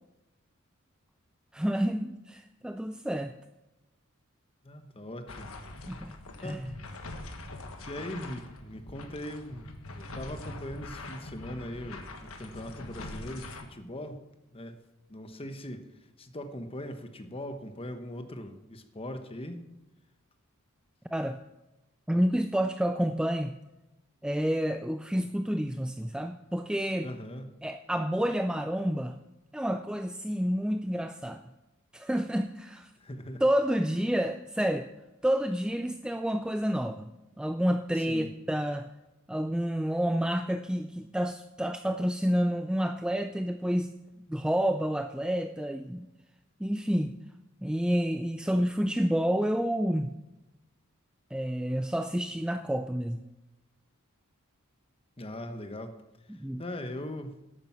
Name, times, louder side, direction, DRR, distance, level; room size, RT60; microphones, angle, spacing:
voice 1, 1.5-3.3 5.9-6.1 6.4-6.7 21.1-21.4 22.1-23.6 24.2-27.1 27.6-29.2 29.5-31.4 31.9-32.9 33.4-34.9 35.2-37.1 37.4-38.9 39.3-43.9 44.3-46.1 46.6-47.1 47.6-50.1 51.3-53.2 56.3-56.6, equal, 5° right, 8 dB, 0.3 m, -29 dB
voice 2, 4.6-5.5 6.4-6.6 7.9-14.2 14.5-14.8 15.1-15.9 16.2-19.7 27.0-27.5 33.0-33.5 37.9-38.3 55.2-55.9 56.6-57.3, left 1 dB, 25° left, 8 dB, 1.0 m, -40 dB
sound 1, 5.3-13.6, left 2 dB, 75° left, 1.4 m, -43 dB
11.5 x 9.0 x 5.6 m, 1.0 s
head